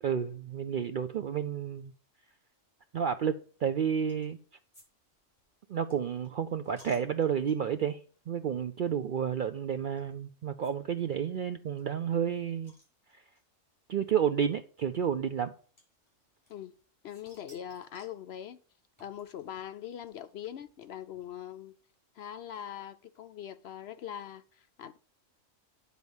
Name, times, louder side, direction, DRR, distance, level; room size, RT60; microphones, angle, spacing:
voice 1, 0.0-1.9 2.9-4.4 5.7-8.0 8.3-12.7 13.9-15.5, right 8 dB, 65° right, 0.5 m, -31 dB
sound 1, 4.1-4.4 4.7-4.9 5.1-7.8 8.4-8.6 8.8-8.9 10.0-10.1 10.6-10.7 11.0-11.1 11.3-11.4 11.8-13.4 14.3-14.4 15.8-16.8 17.1-18.2 19.0-21.3, equal, 20° left, 5.4 m, -61 dB
voice 2, 17.0-18.6 19.0-21.8 22.1-25.0, left 10 dB, 65° left, 0.7 m, -42 dB
9.4 x 4.1 x 7.1 m
omnidirectional pair, 1.3 m